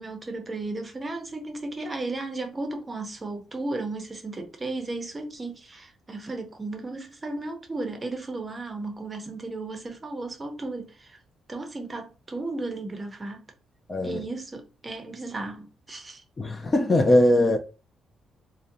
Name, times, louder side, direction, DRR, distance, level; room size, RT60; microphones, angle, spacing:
voice 1, 0.0-11.2 11.5-13.4 14.0-16.2, right 2 dB, 25° right, 0.6 m, -34 dB
voice 2, 13.9-14.2 16.4-17.6, left 1 dB, 30° left, 0.4 m, -20 dB
2.6 x 2.0 x 2.6 m
cardioid pair, 90°, 0 cm